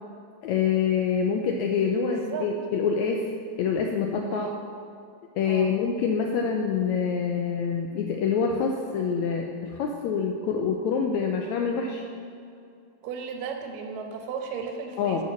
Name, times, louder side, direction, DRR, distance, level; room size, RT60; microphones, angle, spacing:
voice 1, 0.4-3.3 3.6-4.5 5.4-12.0 15.0-15.2, left 6 dB, 90° left, 2 dB, 1.6 m, -26 dB
voice 2, 2.0-2.5 4.3-4.6 5.4-5.7 13.0-15.2, right 6 dB, 90° right, 4 dB, 2.7 m, -35 dB
8.6 x 5.8 x 7.3 m, 2.4 s
omnidirectional pair, 3.8 m